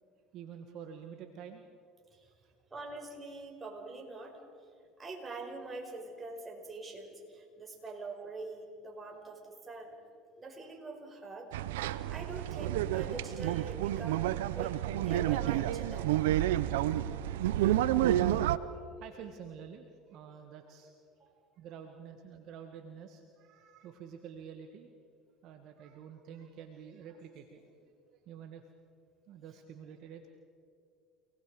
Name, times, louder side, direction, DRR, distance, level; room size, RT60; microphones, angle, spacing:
voice 1, 0.3-1.6 2.4-2.5 18.4-20.9 21.6-24.9 25.4-27.8 28.1-28.6 29.3-30.3, right 7 dB, 60° right, 5 dB, 1.6 m, -49 dB
voice 2, 2.7-4.4 5.0-9.4 9.7-10.0 10.4-11.5 12.1-14.2 14.5-16.2 21.2-21.3, right 3 dB, 25° right, 1 dB, 5.3 m, -44 dB
sound 1, 11.5-18.6, right 13 dB, 85° right, 0.7 m, -30 dB
29.5 x 19.5 x 4.9 m, 2.3 s
hypercardioid pair, 80°, 0 cm